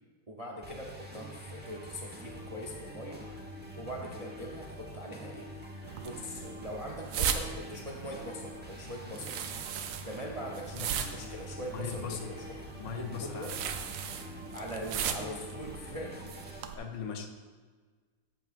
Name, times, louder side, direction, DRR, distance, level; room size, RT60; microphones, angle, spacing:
voice 1, 0.3-3.2 3.8-9.3 10.0-12.6 13.0-13.5 14.5-16.3, equal, 40° right, 0 dB, 0.5 m, -42 dB
sound 1, 0.6-16.6, equal, 5° right, 0.9 m, -46 dB
sound 2, 5.8-16.7, right 8 dB, 85° right, 1.3 m, -39 dB
voice 2, 11.7-12.2 12.8-13.8 16.7-17.3, left 6 dB, 80° left, 4 dB, 1.5 m, -39 dB
13.0 x 8.1 x 2.5 m, 1.5 s
omnidirectional pair, 1.9 m